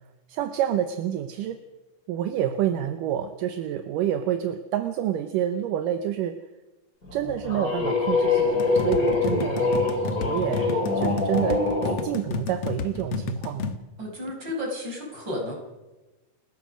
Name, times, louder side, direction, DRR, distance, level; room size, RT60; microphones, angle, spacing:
voice 1, 0.3-1.6 2.1-6.5 7.1-13.8, right 10 dB, 75° right, 10 dB, 2.2 m, -28 dB
sound 1, 7.1-12.0, left 3 dB, 20° left, 4.5 m, -24 dB
sound 2, 8.6-13.8, left 6 dB, 65° left, 1.5 m, -32 dB
voice 2, 14.0-15.5, left 1 dB, 30° right, 1 dB, 5.6 m, -32 dB
29.5 x 14.0 x 6.3 m, 1.1 s
omnidirectional pair, 4.4 m